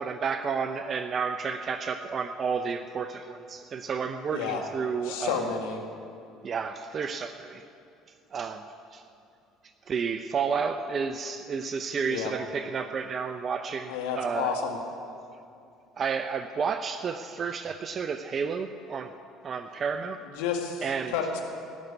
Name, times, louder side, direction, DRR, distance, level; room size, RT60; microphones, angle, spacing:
voice 1, 0.0-5.5 6.4-7.6 8.3-8.6 8.9-9.0 9.9-14.6 16.0-19.1 19.4-20.2 20.8-21.1, right 5 dB, 40° right, 9 dB, 0.6 m, -31 dB
voice 2, 4.3-4.6 5.0-5.8 12.1-12.3 13.9-14.8 20.4-20.8 21.1-21.4, left 6 dB, 85° left, 2 dB, 1.8 m, -30 dB
17.5 x 6.6 x 9.6 m, 2.6 s
supercardioid pair, 85°, 0 cm